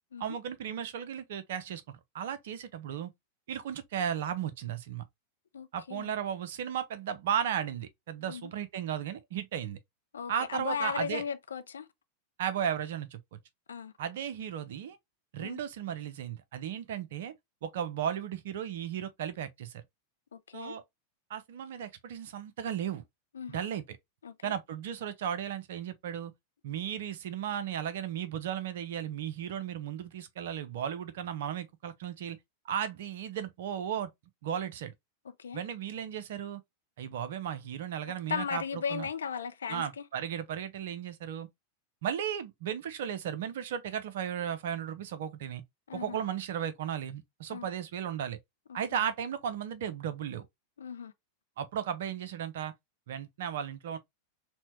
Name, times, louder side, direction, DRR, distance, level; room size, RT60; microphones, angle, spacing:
voice 1, 0.2-3.1 3.5-5.0 5.7-9.8 10.3-11.2 12.4-13.4 14.0-15.0 15.3-17.3 17.6-19.8 20.5-20.8 21.3-23.0 23.5-24.0 24.4-26.3 26.6-32.4 32.6-34.1 34.4-34.9 35.5-36.6 37.0-39.1 39.7-41.5 42.0-45.6 45.9-48.4 48.7-50.5 51.6-52.7 53.1-54.0, right 9 dB, 55° right, 0.5 m, -35 dB
voice 2, 5.5-6.1 8.2-8.5 10.1-11.9 13.7-13.9 15.4-15.6 20.3-20.8 23.3-23.6 24.2-24.5 35.4-35.6 38.3-39.8 45.9-46.2 47.5-47.7 48.7-49.0 50.8-51.1, left 7 dB, 70° left, 0.4 m, -37 dB
4.3 x 2.1 x 2.8 m
figure-of-eight pair, 90°, 0 cm